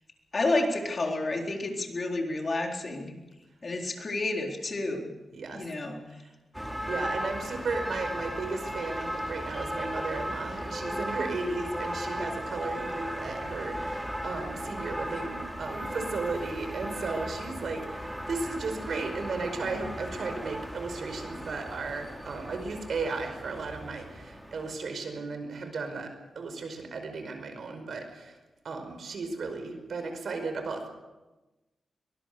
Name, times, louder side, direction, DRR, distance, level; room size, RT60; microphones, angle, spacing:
voice 1, 0.3-3.2 3.6-5.1 5.5-6.0, left 2 dB, 40° left, 2 dB, 4.0 m, -30 dB
voice 2, 5.3-5.6 6.2-6.3 6.9-26.1 26.3-28.4 28.6-30.9, right 4 dB, 70° right, 6 dB, 5.1 m, -35 dB
sound 1, 6.5-24.7, equal, ahead, 2.7 m, -36 dB
23.0 x 20.0 x 6.9 m, 1.1 s
wide cardioid pair, 100°, 0 cm